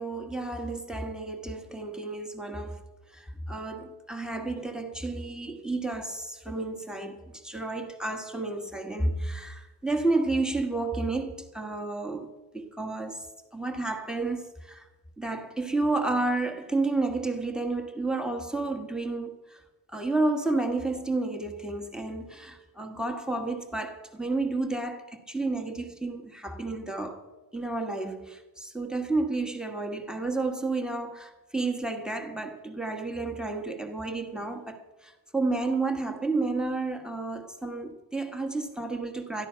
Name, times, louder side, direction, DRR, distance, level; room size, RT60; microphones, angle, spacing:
voice 1, 0.0-2.8 3.1-13.3 13.5-14.9 15.2-19.6 19.9-27.2 27.5-39.5, right 2 dB, ahead, 1.2 m, -31 dB
12.5 x 11.5 x 5.6 m
cardioid pair, 140°, 44 cm